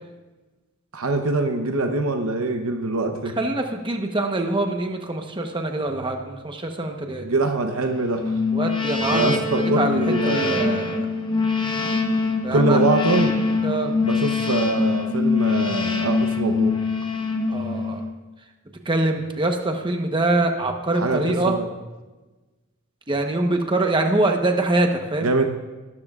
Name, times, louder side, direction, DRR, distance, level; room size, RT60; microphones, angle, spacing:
voice 1, 0.9-3.4 7.2-8.4 9.1-10.8 12.5-13.4 14.0-16.7 20.9-21.7 25.2-25.4, right 2 dB, 80° right, 4 dB, 0.9 m, -24 dB
voice 2, 3.4-7.3 8.5-9.4 9.8-11.1 12.4-12.8 13.6-13.9 17.5-18.1 18.8-21.6 23.1-25.3, right 2 dB, 25° right, 4 dB, 1.0 m, -24 dB
sound 1, 8.2-18.1, left 4 dB, 20° left, 1.0 m, -23 dB
19.5 x 12.0 x 2.4 m, 1.2 s
head